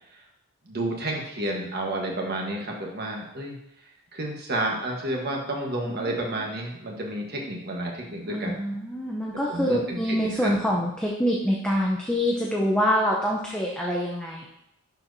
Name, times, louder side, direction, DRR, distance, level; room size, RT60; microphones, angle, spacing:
voice 1, 0.7-3.6 4.1-8.5 9.5-10.6, right 1 dB, 45° right, 0 dB, 1.3 m, -30 dB
voice 2, 8.3-14.5, equal, 5° left, -3 dB, 0.6 m, -25 dB
11.0 x 4.5 x 2.7 m, 0.79 s
head